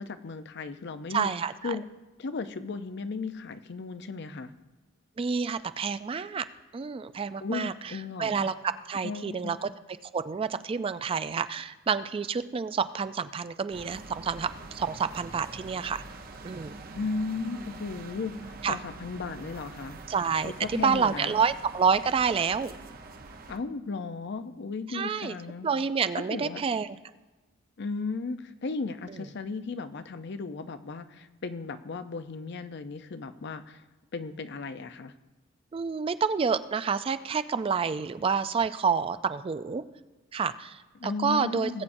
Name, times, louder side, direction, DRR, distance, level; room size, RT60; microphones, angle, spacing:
voice 1, 0.0-1.3 1.6-1.8 2.2-4.5 7.4-8.5 9.0-9.6 16.9-20.0 20.4-21.4 23.5-25.7 26.3-26.6 27.8-33.8 34.1-35.1 41.0-41.8, left 4 dB, 60° left, 11 dB, 0.5 m, -35 dB
voice 2, 1.1-1.8 5.2-6.5 6.7-8.5 8.9-9.7 10.1-16.0 16.4-16.7 18.6-18.8 20.1-22.8 24.9-25.4 25.6-27.0 29.1-29.2 35.7-39.8 40.3-41.8, right 6 dB, 30° right, 13 dB, 0.3 m, -28 dB
sound 1, 13.7-23.6, right 3 dB, 50° right, 0.8 m, -45 dB
19.0 x 8.4 x 2.6 m, 1.2 s
head